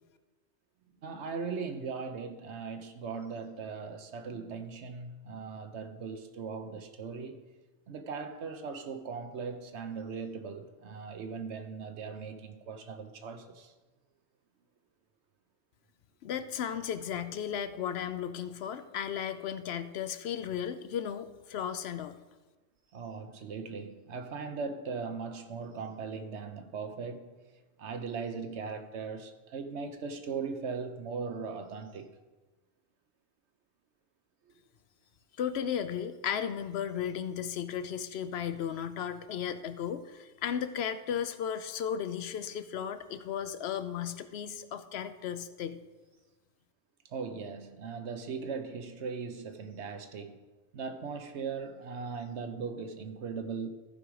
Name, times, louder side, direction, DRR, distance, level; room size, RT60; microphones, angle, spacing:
voice 1, 1.0-7.4 7.9-13.7 22.9-27.4 27.8-32.1 34.5-34.6 47.1-50.4 50.7-53.7, right 5 dB, 80° right, 1.1 m, -39 dB
voice 2, 16.2-22.2 35.4-45.8, left 8 dB, 70° left, 0.8 m, -35 dB
14.5 x 5.0 x 4.7 m
omnidirectional pair, 1.1 m